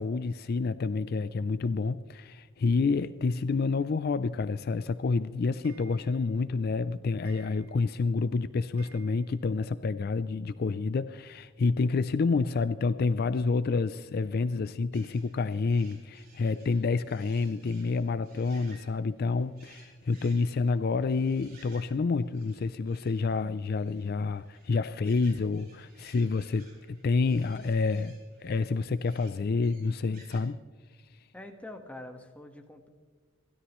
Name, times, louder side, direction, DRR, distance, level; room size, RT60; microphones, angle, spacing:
voice 1, 0.0-28.1 28.4-30.6, left 4 dB, 50° left, 14 dB, 0.4 m, -28 dB
Clock, 4.7-9.8 10.1-10.2 10.4-10.5 10.7-10.8 12.0-12.1 12.6-12.7 13.3-13.4 13.9-14.0 14.5-14.6 15.2-15.3, right 3 dB, 80° right, 2.2 m, -58 dB
sound 1, 14.9-30.4, right 3 dB, 45° right, 4.7 m, -59 dB
voice 2, 31.3-32.9, left 1 dB, 5° left, 4 dB, 1.4 m, -45 dB
29.5 x 13.0 x 3.1 m, 1.5 s
head